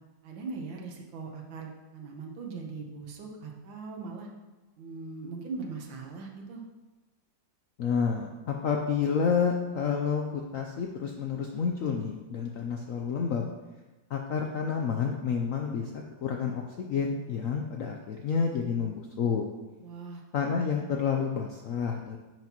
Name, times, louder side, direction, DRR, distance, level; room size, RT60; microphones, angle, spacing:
voice 1, 0.2-4.3 4.8-6.6 19.8-20.2, right 4 dB, 80° right, 1 dB, 1.8 m, -40 dB
voice 2, 7.8-13.5 14.1-19.5 20.3-22.2, left 6 dB, 75° left, 2 dB, 0.7 m, -29 dB
10.5 x 6.0 x 2.9 m, 1.2 s
omnidirectional pair, 2.1 m